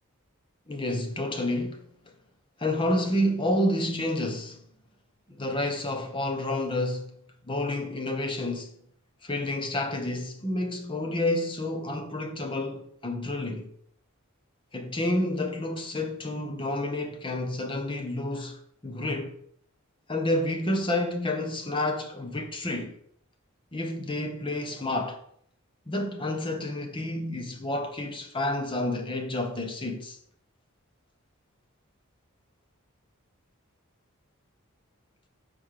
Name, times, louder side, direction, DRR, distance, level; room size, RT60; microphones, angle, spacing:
voice 1, 0.7-1.9 2.6-4.6 5.4-7.2 7.5-8.8 9.2-13.7 14.7-19.4 20.1-22.9 23.7-25.2 25.9-30.2, left 1 dB, 25° left, 1.0 m, -29 dB
5.4 x 5.1 x 6.6 m
head